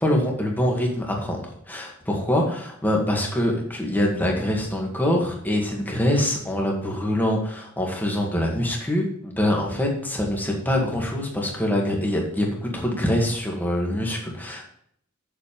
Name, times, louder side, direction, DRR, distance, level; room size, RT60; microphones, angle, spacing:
voice 1, 0.0-14.6, left 1 dB, 10° left, -1 dB, 1.9 m, -24 dB
7.4 x 6.9 x 5.2 m, 0.65 s
head